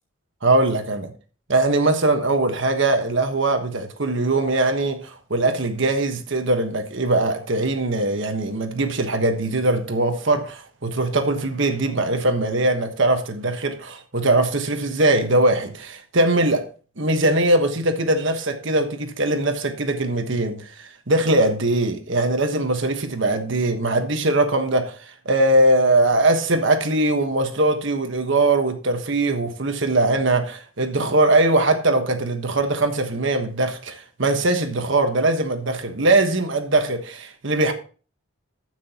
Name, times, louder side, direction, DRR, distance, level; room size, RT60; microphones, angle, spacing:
voice 1, 0.4-1.1 1.5-16.6 17.0-37.7, right 2 dB, 60° right, 1.3 m, -21 dB
15.0 x 6.2 x 3.0 m
head